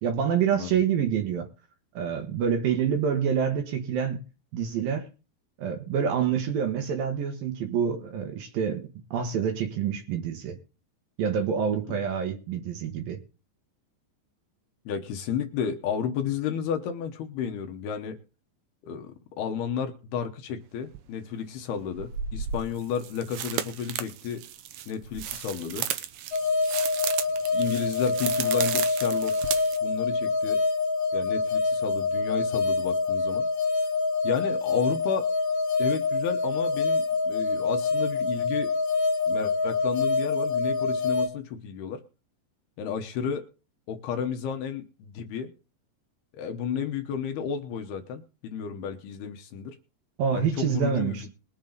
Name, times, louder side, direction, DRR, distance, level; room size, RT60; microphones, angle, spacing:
voice 1, 0.0-1.5 1.9-4.2 4.5-5.1 5.6-10.6 11.2-13.2 50.2-51.3, right 7 dB, 65° right, 2.7 m, -27 dB
voice 2, 14.9-18.2 18.8-24.4 24.9-25.9 27.5-29.3 29.8-30.6 31.1-33.5 34.2-35.3 35.8-38.7 39.3-42.0 42.8-43.5 43.9-45.5 46.3-49.8 50.3-51.3, left 7 dB, 70° left, 2.7 m, -32 dB
sound 1, 20.9-21.0 21.9-29.8, right 9 dB, 85° right, 2.0 m, -34 dB
sound 2, 26.3-41.3, left 4 dB, 50° left, 2.2 m, -26 dB
21.5 x 7.3 x 4.0 m
omnidirectional pair, 5.1 m